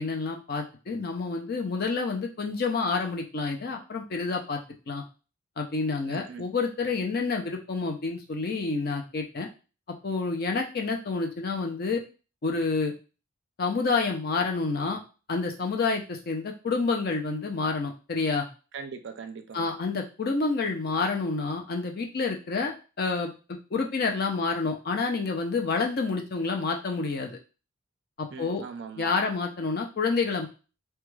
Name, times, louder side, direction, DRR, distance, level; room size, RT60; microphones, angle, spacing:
voice 1, 0.0-4.6 4.9-5.0 5.6-9.5 10.0-12.0 12.4-12.9 13.6-15.0 15.3-18.5 19.5-27.4 28.2-28.6 29.0-30.5, left 4 dB, 45° left, 0.4 m, -28 dB
voice 2, 6.1-6.5 18.7-19.7 28.3-29.1, right 5 dB, 55° right, 0.4 m, -40 dB
2.3 x 2.2 x 3.1 m
head